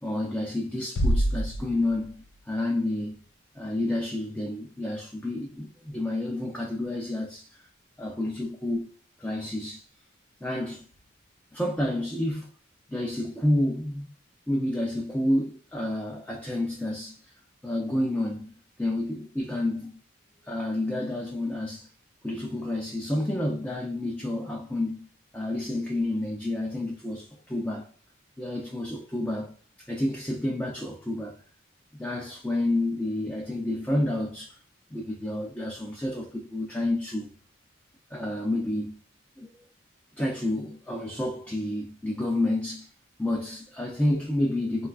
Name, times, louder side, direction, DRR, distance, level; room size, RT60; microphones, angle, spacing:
voice 1, 0.0-3.2 3.6-7.6 8.0-8.9 9.2-9.8 10.4-10.9 11.5-12.5 12.9-14.1 14.5-17.3 17.6-19.9 20.4-21.9 22.2-25.1 25.3-27.9 28.4-31.4 32.0-34.6 34.9-37.3 38.1-39.0 39.4-39.5 40.2-42.9 43.2-44.9, left 1 dB, 5° left, 0.3 m, -29 dB
Bass drum, 1.0-2.4, equal, 80° left, 0.4 m, -26 dB
3.9 x 2.3 x 2.3 m
head